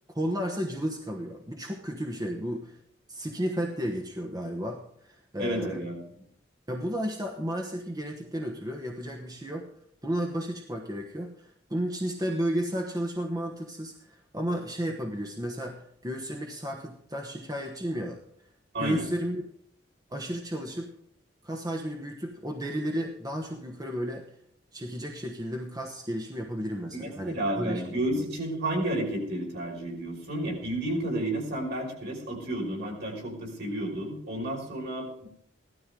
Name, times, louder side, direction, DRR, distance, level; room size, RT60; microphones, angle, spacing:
voice 1, 0.1-2.8 3.1-5.8 6.7-9.7 10.0-18.2 18.8-19.4 20.1-20.9 21.4-24.2 24.7-27.8 28.1-28.2, equal, 20° right, 2 dB, 1.1 m, -33 dB
voice 2, 5.4-6.0 18.7-19.1 26.9-35.3, right 1 dB, 60° right, -1 dB, 5.7 m, -31 dB
16.5 x 13.0 x 3.8 m, 0.71 s
head